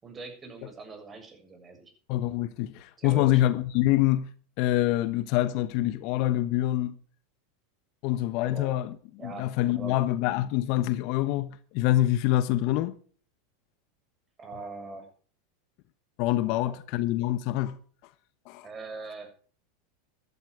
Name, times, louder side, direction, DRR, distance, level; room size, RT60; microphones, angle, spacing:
voice 1, 0.0-1.9 3.0-3.4 8.4-8.8 9.2-10.0 14.4-15.1 16.4-16.8 18.6-19.3, right 3 dB, 25° right, 7.1 m, -42 dB
voice 2, 2.1-4.3 4.6-6.9 8.0-9.0 9.2-12.9 16.2-17.8 18.5-18.7, left 14 dB, 55° left, 1.1 m, -25 dB
14.5 x 12.5 x 5.0 m
hypercardioid pair, 100°, 0 cm